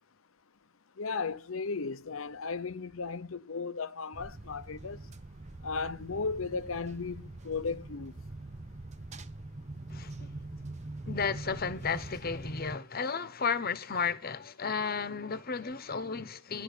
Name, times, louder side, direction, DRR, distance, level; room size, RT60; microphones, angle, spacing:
voice 1, 1.0-5.0 5.6-8.1, left 4 dB, 85° left, 0.8 m, -35 dB
sound 1, 4.1-12.8, right 2 dB, 35° right, 0.8 m, -44 dB
voice 2, 9.9-10.3 11.1-16.6, left 5 dB, 45° left, 1.1 m, -33 dB
11.5 x 8.4 x 9.9 m
head